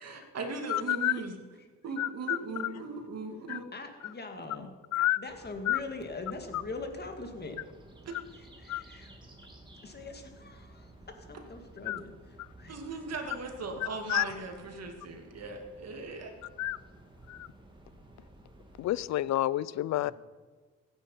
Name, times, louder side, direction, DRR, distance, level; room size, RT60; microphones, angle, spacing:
voice 1, 0.0-1.4 1.8-3.6 12.7-16.3 20.0-20.1, right 4 dB, 55° right, 2.3 m, -38 dB
voice 2, 0.7-1.1 2.0-2.4 3.5-3.6 4.9-5.2 5.7-5.8 8.7-8.8 11.9-12.0 14.1-14.2 16.6-16.8 17.3-17.5 18.8-20.1, left 14 dB, 65° left, 0.5 m, -29 dB
voice 3, 3.7-4.7 5.2-7.6 8.6-9.2 9.8-12.8 13.9-14.0, left 3 dB, 35° left, 2.2 m, -42 dB
sound 1, 5.3-19.1, right 1 dB, 15° right, 2.6 m, -54 dB
15.5 x 9.3 x 5.6 m
cardioid pair, 90°, 30 cm